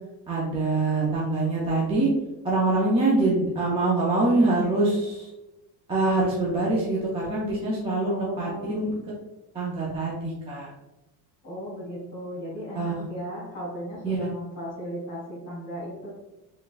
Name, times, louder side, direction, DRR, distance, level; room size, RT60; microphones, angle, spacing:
voice 1, 0.3-2.1 2.4-5.3 5.9-8.9 9.5-10.7 12.8-13.1 14.0-14.2, right 2 dB, 15° right, -5 dB, 0.3 m, -24 dB
voice 2, 8.0-8.8 11.4-16.1, equal, 25° left, -8 dB, 1.4 m, -36 dB
3.5 x 3.0 x 2.4 m, 1.0 s
cardioid pair, 165°, 41 cm